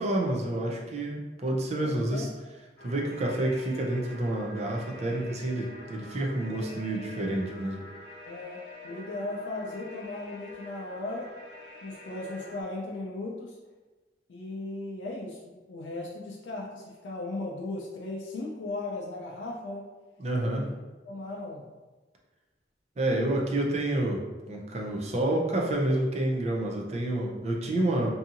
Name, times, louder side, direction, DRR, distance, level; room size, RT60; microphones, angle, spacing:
voice 1, 0.0-2.3 2.8-7.8 20.2-20.7 23.0-28.1, right 1 dB, 35° right, 0 dB, 0.4 m, -29 dB
voice 2, 1.8-2.3 8.2-11.3 11.8-13.6 14.3-19.9 20.6-20.8 21.0-21.7, left 2 dB, 90° left, -3 dB, 0.4 m, -37 dB
sound 1, 2.8-12.6, left 1 dB, 60° left, 0.7 m, -47 dB
2.7 x 2.6 x 2.5 m, 1.2 s
head